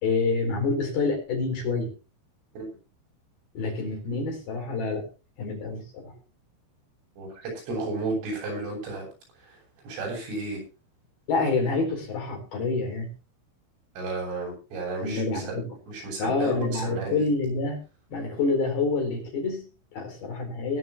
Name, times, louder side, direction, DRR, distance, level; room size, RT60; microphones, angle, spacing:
voice 1, 0.0-1.9 3.5-5.1 5.4-6.2 11.3-13.1 15.0-15.7 16.2-17.8 18.1-20.8, left 3 dB, 50° left, 2 dB, 6.0 m, -27 dB
voice 2, 7.2-9.1 9.4-10.6 14.0-15.6 15.9-17.3, right 3 dB, 80° right, 0 dB, 10.5 m, -33 dB
20.5 x 11.0 x 3.0 m, 0.32 s
omnidirectional pair, 5.7 m